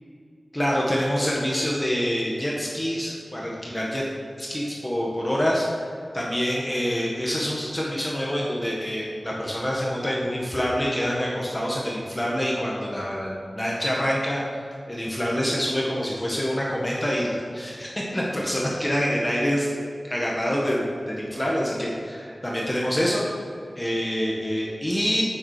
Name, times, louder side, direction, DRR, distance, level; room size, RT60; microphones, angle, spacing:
voice 1, 0.5-4.0 4.4-5.7 6.1-14.4 14.9-19.7 20.0-23.2 23.7-25.2, equal, 15° left, -4 dB, 1.6 m, -26 dB
9.5 x 7.2 x 5.0 m, 2.4 s
wide cardioid pair, 75°, 0 cm